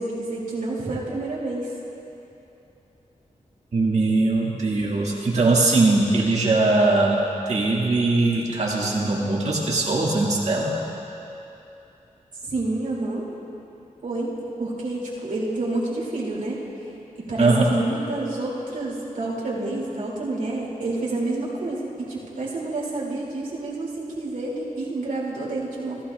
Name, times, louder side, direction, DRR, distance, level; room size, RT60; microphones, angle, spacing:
voice 1, 0.0-1.7 12.5-13.2 14.0-14.3 14.6-16.6 17.2-26.0, right 2 dB, 85° right, -6 dB, 2.5 m, -28 dB
voice 2, 3.7-7.2 7.5-10.7 17.4-17.7, right 2 dB, 60° right, -4 dB, 1.9 m, -20 dB
16.5 x 15.0 x 2.4 m, 2.9 s
wide cardioid pair, 150°, 13 cm